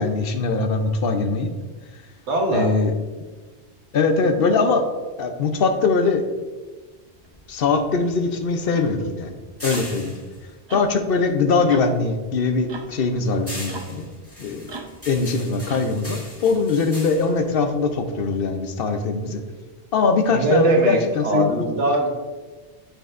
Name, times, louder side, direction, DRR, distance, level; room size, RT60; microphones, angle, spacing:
voice 1, 0.0-1.5 2.5-2.9 3.9-4.9 5.2-6.2 7.5-9.3 9.6-10.2 10.7-14.1 14.4-14.8 15.1-19.4 19.9-21.7, left 4 dB, 60° left, 6 dB, 0.9 m, -21 dB
voice 2, 2.3-2.7 20.3-22.1, right 2 dB, 85° right, 1 dB, 1.5 m, -20 dB
sound 1, 7.2-11.7 12.1-18.5, left 1 dB, 10° left, 1.9 m, -39 dB
sound 2, 8.7-8.9 9.7-9.9 10.7-10.9 11.7-11.9 12.7-12.9 13.7-13.9 14.7-15.0 15.7-16.0, right 3 dB, 35° right, 0.4 m, -37 dB
11.5 x 4.6 x 2.5 m, 1.3 s
omnidirectional pair, 1.2 m